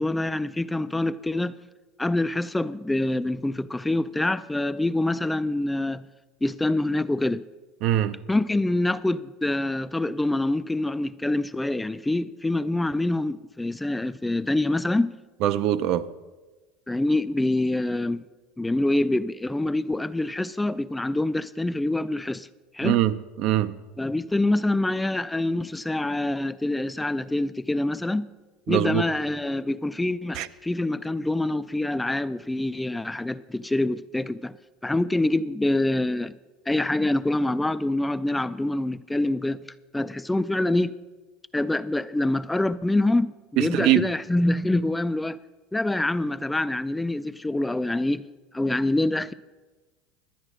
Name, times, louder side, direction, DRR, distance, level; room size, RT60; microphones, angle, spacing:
voice 1, 0.0-1.6 2.0-6.1 6.4-7.4 8.3-15.1 16.9-18.2 18.6-22.5 22.7-23.0 24.0-28.3 28.7-34.5 34.8-36.3 36.7-39.6 39.9-40.9 41.5-45.4 45.7-48.2 48.5-49.3, left 2 dB, 5° left, 0.3 m, -25 dB
voice 2, 7.8-8.2 15.4-16.1 22.8-23.7 28.7-29.0 30.3-30.5 43.6-44.1, right 12 dB, 60° right, 0.6 m, -22 dB
11.5 x 8.8 x 6.2 m
supercardioid pair, 120°, 0 cm